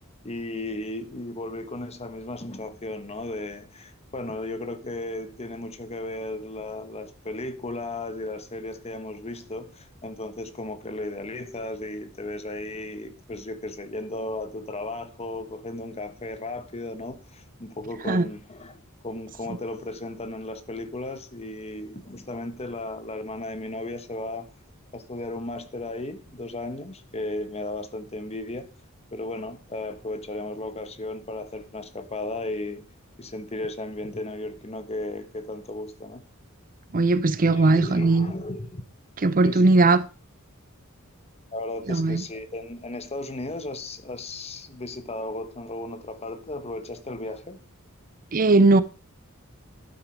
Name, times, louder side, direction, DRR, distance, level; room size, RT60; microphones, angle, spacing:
voice 1, 0.2-24.5 24.9-28.7 29.1-32.9 33.2-36.2 37.5-38.8 39.4-39.6 41.5-47.6, left 2 dB, 30° left, 1.2 m, -35 dB
voice 2, 36.9-38.3 39.2-40.0 41.9-42.2 48.3-48.8, right 2 dB, 40° right, 0.7 m, -19 dB
11.5 x 9.1 x 4.6 m
head